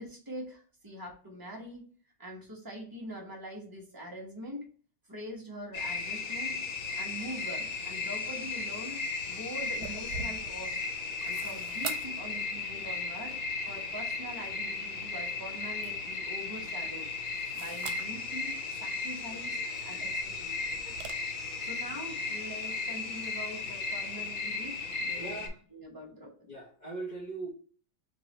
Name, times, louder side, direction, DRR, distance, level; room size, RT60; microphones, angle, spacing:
voice 1, 0.0-1.8 2.2-4.7 5.1-6.6 6.9-10.8 11.2-13.4 13.7-17.1 17.5-19.5 19.8-20.8 21.6-25.4 25.7-26.5, equal, 15° right, 0.7 m, -43 dB
sound 1, 5.7-25.5, left 4 dB, 85° left, 1.7 m, -35 dB
sound 2, 9.6-21.1, right 6 dB, 85° right, 1.4 m, -47 dB
voice 2, 25.1-25.6 26.5-27.5, right 3 dB, 60° left, 0.4 m, -40 dB
3.6 x 3.3 x 3.9 m
omnidirectional pair, 2.2 m